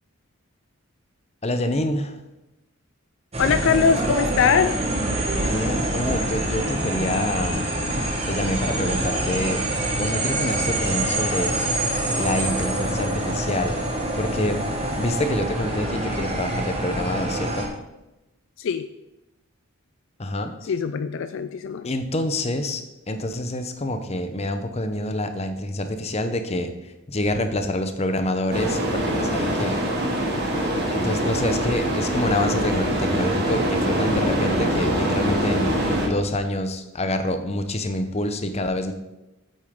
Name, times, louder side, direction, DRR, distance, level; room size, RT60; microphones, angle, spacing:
voice 1, 1.4-2.2 5.4-7.7 8.3-9.6 10.0-11.6 12.1-13.8 14.2-14.6 15.0-17.7 20.2-20.5 21.8-26.7 27.1-29.8 30.9-35.7 36.0-38.9, left 1 dB, 30° left, 8 dB, 0.7 m, -26 dB
sound 1, 3.3-17.7, right 1 dB, 30° right, 1.4 m, -26 dB
voice 2, 3.4-4.9 18.6-18.9 20.6-21.9, left 6 dB, 60° left, 11 dB, 0.4 m, -22 dB
sound 2, 28.5-36.1, equal, 50° right, 2.3 m, -24 dB
8.8 x 8.1 x 3.7 m, 0.96 s
head